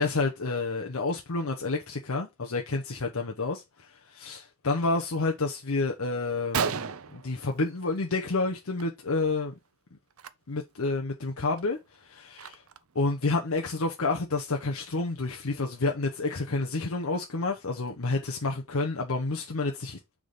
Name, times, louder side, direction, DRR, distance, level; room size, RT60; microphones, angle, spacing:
voice 1, 0.0-9.5 10.5-12.6 12.9-20.0, left 3 dB, 70° left, 0.9 m, -29 dB
Gunshot gunfire, 6.3-6.4 6.5-8.2 8.5-8.8 9.1-9.3 10.1-10.3 10.8-10.9 11.4-13.0, right 6 dB, 65° right, 0.6 m, -34 dB
6.4 x 3.8 x 5.2 m
head